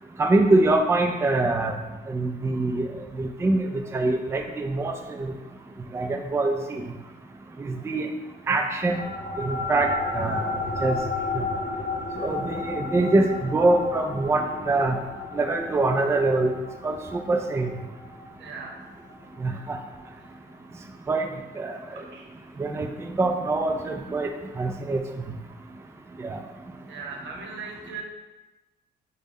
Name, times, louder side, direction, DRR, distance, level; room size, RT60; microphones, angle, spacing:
voice 1, 0.2-1.7 2.1-2.9 3.2-3.7 3.9-5.3 5.9-6.8 7.6-8.1 8.5-9.0 9.4-10.5 10.8-11.0 11.3-11.4 12.2-15.0 15.3-16.5 16.8-17.7 19.4-19.8 21.1-22.0 22.6-24.3 24.6-25.0 26.2-26.4, right 2 dB, 15° right, 5 dB, 0.3 m, -24 dB
sound 1, 8.8-19.6, left 3 dB, 45° left, 0.7 m, -33 dB
voice 2, 18.4-18.8 21.9-22.6 26.9-28.0, right 5 dB, 70° right, 1 dB, 0.9 m, -39 dB
5.0 x 2.1 x 3.5 m, 1.1 s
cardioid pair, 90°, 20 cm